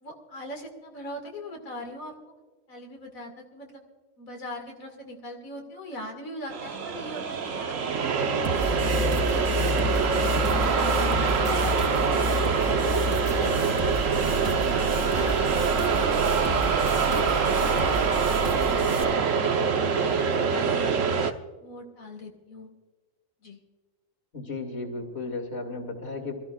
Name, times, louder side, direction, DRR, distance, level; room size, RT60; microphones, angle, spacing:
voice 1, 0.0-2.1 2.7-3.8 4.2-11.3 11.9-13.1 13.5-15.4 15.7-19.3 19.7-20.0 20.3-21.2 21.6-22.7 23.4-23.6, left 1 dB, 90° left, 1 dB, 2.5 m, -41 dB
sound 1, 6.5-21.3, right 5 dB, 70° right, 1.4 m, -25 dB
sound 2, 8.4-19.0, left 1 dB, 25° right, 2.6 m, -31 dB
sound 3, 11.4-12.0 13.3-13.8 15.1-15.6 16.9-17.4, left 2 dB, 25° left, 1.9 m, -39 dB
voice 2, 24.3-26.3, left 3 dB, 50° left, 2 dB, 2.7 m, -34 dB
26.0 x 14.5 x 2.4 m, 1.4 s
omnidirectional pair, 1.4 m